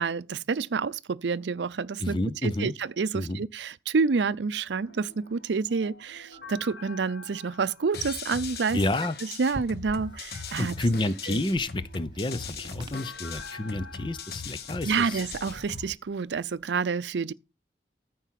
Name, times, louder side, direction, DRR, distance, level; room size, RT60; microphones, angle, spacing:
voice 1, 0.0-8.8 9.2-10.7 11.3-11.4 14.8-17.3, right 5 dB, 85° right, 0.5 m, -28 dB
voice 2, 2.0-2.7 3.1-3.4 8.7-9.2 10.6-15.2, left 2 dB, 25° left, 0.6 m, -29 dB
sound 1, 4.5-15.8, left 3 dB, 85° left, 2.8 m, -49 dB
sound 2, 7.9-15.9, left 5 dB, 60° left, 1.3 m, -40 dB
sound 3, 9.5-16.6, right 1 dB, 25° right, 1.1 m, -47 dB
14.0 x 4.6 x 5.8 m
head